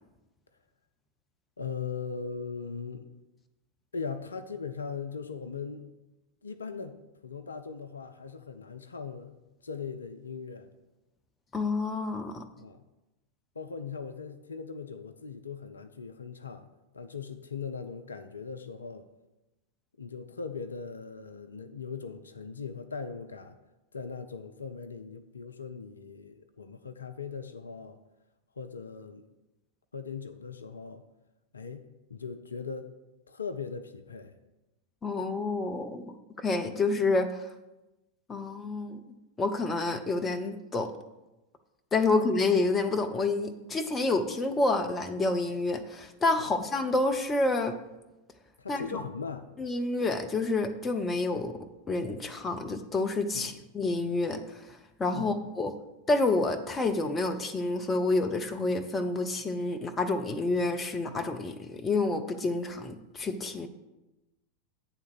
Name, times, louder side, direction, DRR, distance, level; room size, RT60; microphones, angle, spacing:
voice 1, 1.6-3.1 3.9-5.9 6.4-9.4 9.6-10.7 12.6-12.8 13.6-16.7 16.9-19.1 20.0-23.6 23.9-28.0 28.6-29.2 29.9-31.0 31.5-32.9 33.3-34.3 46.4-46.5 48.6-49.5 53.3-53.6 55.1-55.4, left 5 dB, 75° left, 9 dB, 0.4 m, -39 dB
voice 2, 11.5-12.4 35.0-37.5 38.3-39.0 39.4-40.9 41.9-47.8 48.7-49.0 49.6-51.5 51.9-55.7 56.1-63.7, left 3 dB, 20° left, 6 dB, 0.6 m, -29 dB
8.9 x 3.6 x 6.2 m, 1.0 s
figure-of-eight pair, 90°, 0 cm